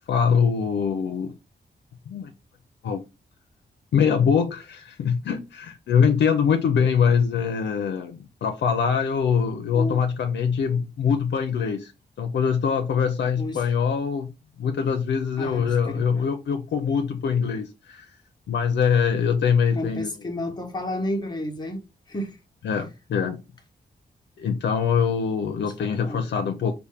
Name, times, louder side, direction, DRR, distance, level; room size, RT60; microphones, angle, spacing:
voice 1, 0.1-1.3 2.1-2.3 2.8-3.0 3.9-11.9 12.2-14.3 14.6-18.1 18.5-20.1 22.6-23.4 24.4-26.7, left 6 dB, 85° left, 0.5 m, -23 dB
voice 2, 15.4-16.3 19.7-22.4 22.7-22.8 25.7-26.3, left 1 dB, 25° left, 0.8 m, -32 dB
4.2 x 2.2 x 3.4 m
wide cardioid pair, 125°, 18 cm